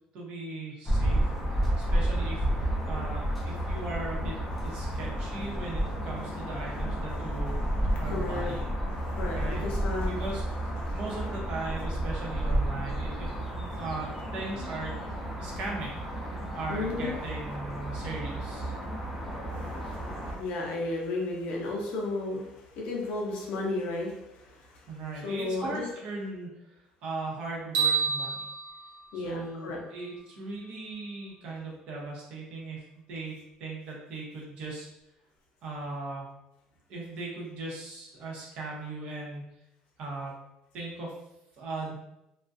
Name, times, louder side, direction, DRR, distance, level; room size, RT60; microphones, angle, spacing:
voice 1, 0.1-1.3 1.8-4.3 4.6-7.6 8.0-8.8 9.3-9.6 10.1-10.4 10.9-13.3 13.6-15.0 15.4-18.7 24.9-26.5 27.0-28.5 29.1-34.9 35.6-36.3 36.9-39.4 40.0-40.3 40.7-41.1 41.5-41.9, right 2 dB, 50° right, -3 dB, 0.7 m, -38 dB
sound 1, 0.9-20.4, right 1 dB, 5° left, 0.5 m, -31 dB
voice 2, 8.0-8.5 8.9-10.3 10.8-10.9 16.7-17.1 19.5-24.9 25.2-25.8 29.1-29.8, left 2 dB, 55° left, -1 dB, 0.6 m, -34 dB
sound 2, 27.7-30.0, right 6 dB, 75° right, 0.9 m, -30 dB
2.3 x 2.2 x 2.5 m, 0.86 s
cardioid pair, 175°, 2 cm